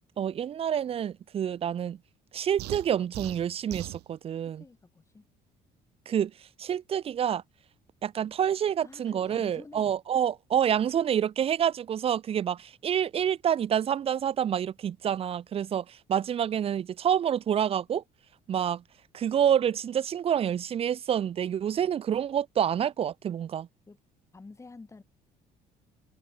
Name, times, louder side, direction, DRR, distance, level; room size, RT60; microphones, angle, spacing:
voice 1, 0.2-2.0 2.3-4.6 6.1-6.3 6.6-7.4 8.0-18.0 18.5-18.8 19.1-23.7, right 9 dB, 35° right, 0.4 m, -28 dB
sound 1, 2.6-4.0, right 18 dB, 75° right, 0.6 m, -39 dB
voice 2, 4.5-5.3 8.8-10.0 23.9-24.0 24.3-25.0, left 3 dB, 15° left, 1.5 m, -49 dB
cardioid pair, 110°, 17 cm